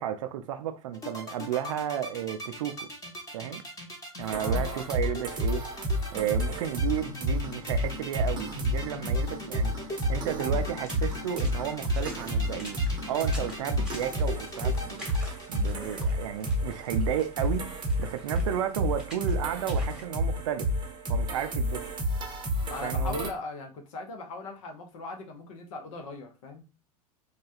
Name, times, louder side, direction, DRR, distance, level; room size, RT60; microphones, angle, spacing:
voice 1, 0.0-2.9 3.3-3.6 4.2-5.7 6.1-9.7 10.1-15.1 15.5-17.7 18.0-20.7 21.1-21.8 22.8-23.3, right 10 dB, 60° right, 0.4 m, -33 dB
sound 1, 0.9-15.7, equal, 15° left, 1.1 m, -40 dB
sound 2, 4.2-23.3, equal, 25° right, 0.8 m, -30 dB
voice 2, 4.3-4.9 22.7-26.6, left 2 dB, 55° left, 0.7 m, -39 dB
Water / Splash splatter, 10.7-20.0, equal, 5° right, 1.2 m, -48 dB
3.2 x 2.2 x 2.5 m
figure-of-eight pair, 85°, 19 cm